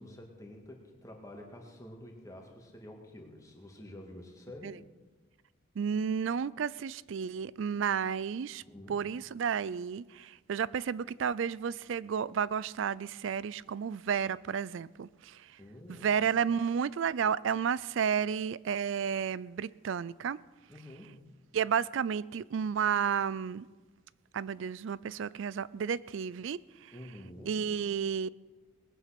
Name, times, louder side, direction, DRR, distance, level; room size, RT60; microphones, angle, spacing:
voice 1, 0.0-4.8 8.6-9.0 15.6-16.1 20.7-21.3 26.9-27.6, left 1 dB, 15° left, 2.0 m, -48 dB
voice 2, 5.8-8.6 8.9-15.5 15.9-20.4 21.5-23.7 24.3-26.9 27.4-28.3, right 7 dB, 70° right, 0.4 m, -32 dB
19.5 x 9.2 x 5.9 m
head